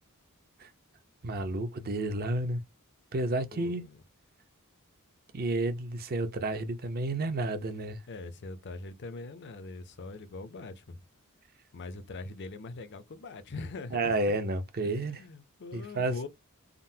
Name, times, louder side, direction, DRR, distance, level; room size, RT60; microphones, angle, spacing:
voice 1, 1.2-2.6 3.1-3.9 5.3-8.0 13.9-15.2 15.7-16.3, right 2 dB, 45° right, 0.6 m, -31 dB
voice 2, 3.5-4.0 8.1-11.0 11.7-14.1 14.8-16.3, left 3 dB, 55° left, 0.5 m, -42 dB
3.7 x 2.0 x 2.7 m
head